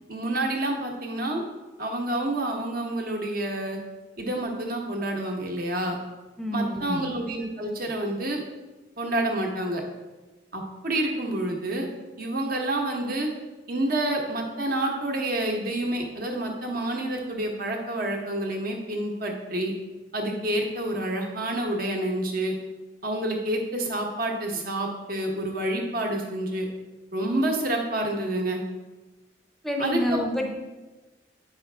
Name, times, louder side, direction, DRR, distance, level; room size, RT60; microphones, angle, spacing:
voice 1, 0.1-1.4 1.8-3.8 4.2-6.0 6.5-8.4 9.0-9.8 10.5-11.9 12.2-13.3 13.7-19.7 20.1-22.5 23.0-26.7 27.1-28.6 29.8-30.0, right 1 dB, 45° right, 1 dB, 1.1 m, -28 dB
voice 2, 6.4-7.1 29.6-30.5, left 1 dB, ahead, 2 dB, 0.7 m, -28 dB
8.6 x 5.5 x 3.4 m, 1.2 s
head